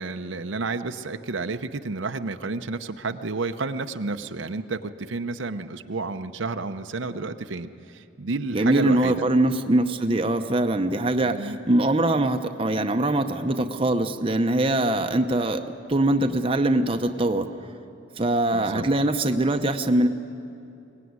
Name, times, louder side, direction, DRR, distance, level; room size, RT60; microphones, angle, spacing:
voice 1, 0.0-9.2 11.2-11.6 18.5-18.8, right 3 dB, 75° right, 8 dB, 0.8 m, -31 dB
voice 2, 8.5-15.6 15.9-17.5 18.2-20.1, right 1 dB, 25° right, 6 dB, 0.8 m, -22 dB
23.0 x 18.5 x 9.6 m, 2.7 s
head